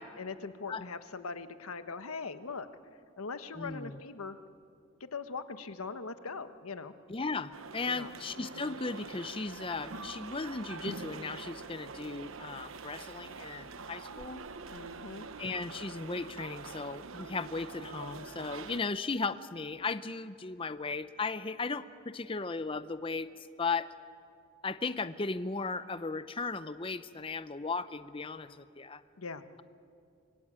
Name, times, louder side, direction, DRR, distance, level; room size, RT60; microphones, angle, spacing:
voice 1, 0.2-2.7 3.2-4.4 5.0-6.9 7.9-8.1 14.7-15.3 29.2-29.4, left 4 dB, 90° left, 10 dB, 1.2 m, -41 dB
voice 2, 3.6-4.0 7.1-14.4 15.4-23.3 23.6-23.9 24.6-29.0, left 4 dB, 25° left, 12 dB, 0.6 m, -36 dB
sound 1, 7.5-18.8, right 4 dB, 70° right, 1.1 m, -45 dB
26.0 x 23.0 x 8.7 m, 2.5 s
head